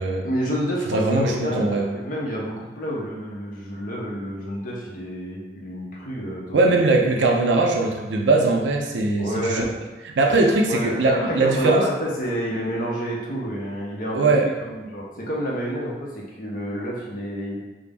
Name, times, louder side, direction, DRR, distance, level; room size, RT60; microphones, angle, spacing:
voice 1, 0.2-7.0 9.2-9.7 10.6-17.6, equal, 50° left, -3 dB, 0.6 m, -29 dB
voice 2, 0.9-1.9 6.5-9.6 10.2-11.8 14.1-14.5, right 3 dB, 80° right, 2 dB, 0.4 m, -20 dB
2.5 x 2.0 x 3.3 m, 1.2 s
head